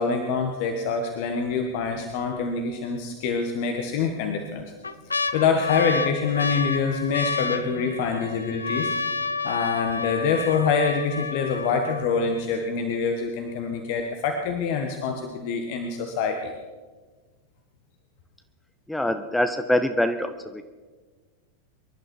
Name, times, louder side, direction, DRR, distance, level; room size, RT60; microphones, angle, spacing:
voice 1, 0.0-4.6 5.3-8.9 9.4-16.5, left 5 dB, 50° left, 4 dB, 1.5 m, -25 dB
sound 1, 1.6-2.1 2.6-2.7 3.6-4.1 4.6-12.6 13.3-13.4 13.5-14.0 14.5-14.6, left 4 dB, 75° left, 0.6 m, -30 dB
voice 2, 18.9-20.6, left 1 dB, 5° left, 9 dB, 0.7 m, -24 dB
24.5 x 11.5 x 4.8 m, 1.4 s
figure-of-eight pair, 90°, 0 cm